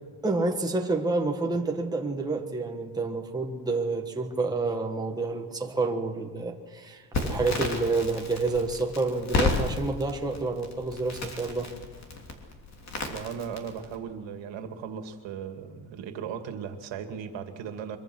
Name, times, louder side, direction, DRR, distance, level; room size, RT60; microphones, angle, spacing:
voice 1, 0.2-11.7, right 3 dB, 10° right, 2 dB, 1.4 m, -29 dB
Crackle, 7.1-14.0, left 3 dB, 35° left, 3.2 m, -32 dB
voice 2, 13.1-18.0, right 7 dB, 75° right, 7 dB, 2.3 m, -37 dB
24.0 x 23.5 x 6.3 m, 1.4 s
cardioid pair, 170°, 45 cm